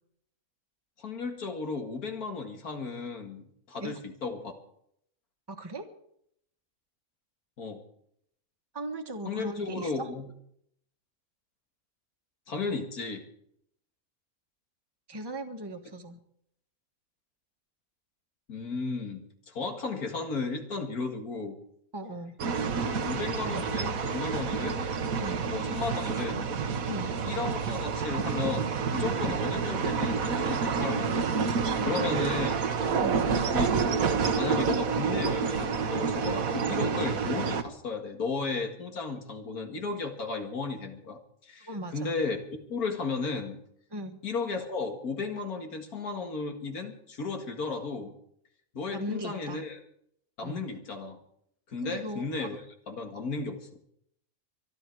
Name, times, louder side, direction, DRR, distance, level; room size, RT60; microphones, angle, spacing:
voice 1, 1.0-4.5 7.6-7.8 9.2-10.3 12.5-13.2 18.5-21.6 22.9-24.9 25.5-26.5 27.2-31.3 31.8-32.5 33.5-33.7 34.3-43.6 44.2-48.2 48.7-49.8 50.4-51.2 51.7-52.6 52.9-53.8, left 4 dB, 85° left, 4 dB, 2.5 m, -34 dB
voice 2, 5.5-5.9 8.7-10.1 15.1-16.2 21.9-22.4 25.2-25.4 26.9-27.1 29.2-29.4 31.6-31.9 33.0-33.3 41.6-42.1 43.9-44.2 48.9-49.6 50.4-50.6 51.8-52.5, right 1 dB, 15° right, 4 dB, 1.4 m, -38 dB
sound 1, 22.4-37.6, right 5 dB, 70° right, 1.6 m, -28 dB
24.0 x 11.5 x 4.6 m, 0.71 s
omnidirectional pair, 1.5 m